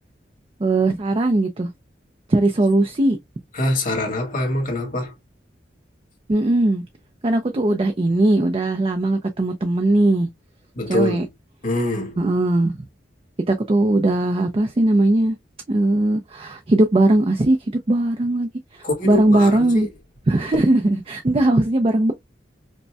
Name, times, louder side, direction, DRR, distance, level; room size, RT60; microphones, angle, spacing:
voice 1, 0.6-1.7 2.3-3.2 6.3-6.8 7.2-10.3 10.9-11.3 12.2-12.8 13.5-15.4 15.7-17.6 17.9-19.9 20.3-22.1, right 2 dB, 30° right, 0.4 m, -19 dB
voice 2, 3.5-5.1 10.8-11.3 11.6-12.2 18.8-19.9, left 2 dB, 50° left, 1.6 m, -24 dB
5.2 x 2.2 x 2.2 m
head